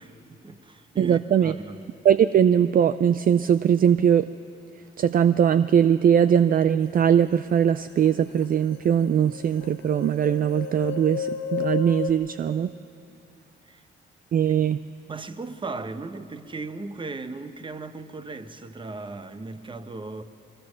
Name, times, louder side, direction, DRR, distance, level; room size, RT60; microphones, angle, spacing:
voice 1, 0.0-1.9 13.6-13.8 14.5-14.6 15.1-20.2, right 3 dB, 25° right, 1.0 m, -37 dB
voice 2, 1.0-1.5 2.0-4.3 5.0-12.7 14.3-14.8, right 8 dB, 45° right, 0.4 m, -20 dB
sound 1, 8.1-8.2 8.4-12.1, left 8 dB, 90° left, 1.1 m, -33 dB
22.0 x 20.5 x 6.4 m
cardioid pair, 90°, 20 cm